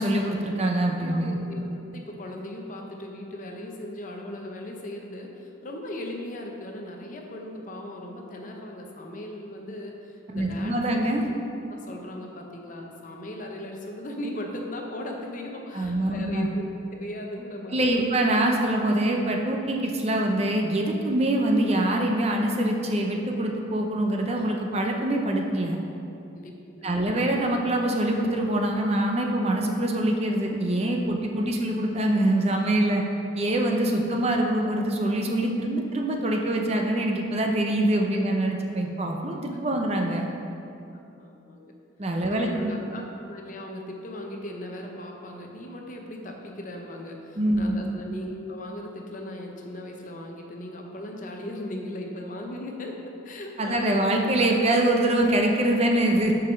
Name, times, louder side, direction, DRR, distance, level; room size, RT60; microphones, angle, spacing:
voice 1, 0.0-1.4 10.3-11.2 15.7-16.5 17.7-25.8 26.8-33.0 33.4-40.3 42.0-42.7 47.4-47.7 53.6-56.3, right 1 dB, 30° right, 1 dB, 0.5 m, -24 dB
voice 2, 1.0-10.8 11.3-11.4 11.7-16.7 17.0-18.1 26.3-26.5 26.8-27.2 31.3-31.4 41.2-41.7 42.2-54.2, left 1 dB, 40° left, 1 dB, 0.7 m, -38 dB
6.4 x 4.8 x 6.2 m, 2.7 s
head